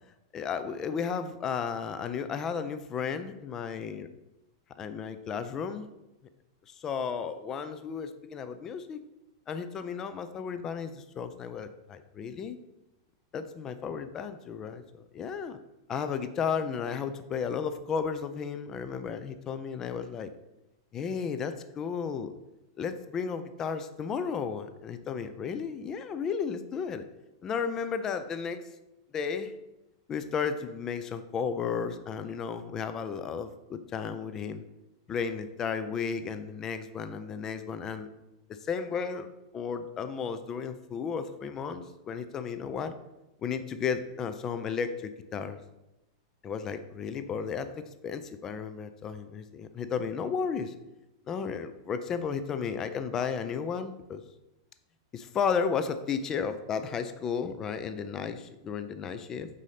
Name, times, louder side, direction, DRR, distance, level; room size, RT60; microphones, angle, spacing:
voice 1, 0.3-4.1 4.8-5.9 6.7-9.0 9.5-12.6 13.3-15.6 15.9-20.3 20.9-22.3 22.8-27.1 27.4-28.7 29.1-29.5 30.1-34.7 35.1-38.1 38.6-39.3 39.5-42.9 43.4-45.6 46.4-50.7 51.3-54.2 55.1-59.5, left 6 dB, 20° left, 10 dB, 0.4 m, -33 dB
4.8 x 4.0 x 5.7 m, 0.96 s
supercardioid pair, 160°, 2 cm